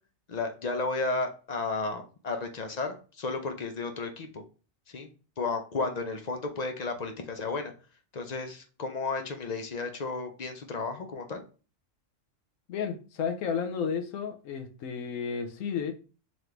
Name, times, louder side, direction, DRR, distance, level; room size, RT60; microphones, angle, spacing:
voice 1, 0.3-4.4 4.9-5.1 5.4-7.7 8.1-11.4, left 3 dB, 50° left, 0.5 m, -33 dB
voice 2, 12.7-15.9, left 6 dB, 80° left, 1.0 m, -32 dB
3.9 x 3.1 x 3.2 m
omnidirectional pair, 1.4 m